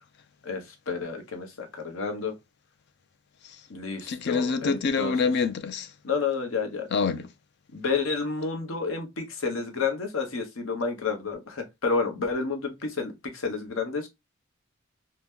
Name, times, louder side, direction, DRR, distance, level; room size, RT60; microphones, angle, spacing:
voice 1, 0.4-2.3 3.7-5.1 6.0-6.9 7.7-14.1, left 4 dB, 70° left, 0.8 m, -30 dB
voice 2, 4.1-5.9 6.9-7.3, left 5 dB, 50° left, 0.4 m, -26 dB
2.8 x 2.1 x 3.4 m
head